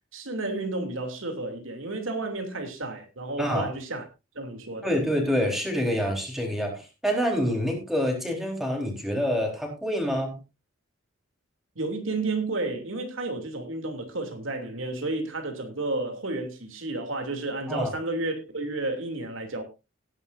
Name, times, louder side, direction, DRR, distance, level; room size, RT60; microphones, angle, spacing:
voice 1, 0.1-4.0 4.3-4.9 11.8-19.6, right 2 dB, 85° right, 2.9 m, -31 dB
voice 2, 3.4-3.7 4.8-10.4 17.7-17.9, equal, ahead, 4.1 m, -27 dB
17.5 x 11.0 x 2.6 m
head